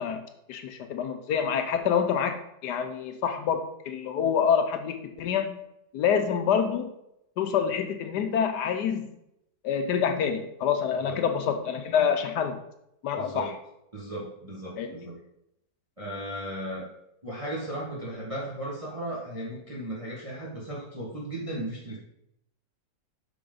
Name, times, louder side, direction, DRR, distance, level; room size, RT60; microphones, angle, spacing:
voice 1, 0.0-5.6 5.9-6.9 7.4-9.1 9.6-12.6 13.0-13.5 14.8-14.9, left 7 dB, 75° left, 7 dB, 1.2 m, -27 dB
voice 2, 13.2-13.6 13.9-15.2 16.0-16.9 17.2-22.0, right 1 dB, 20° right, -5 dB, 1.5 m, -36 dB
7.7 x 6.1 x 3.9 m, 0.81 s
omnidirectional pair, 1.9 m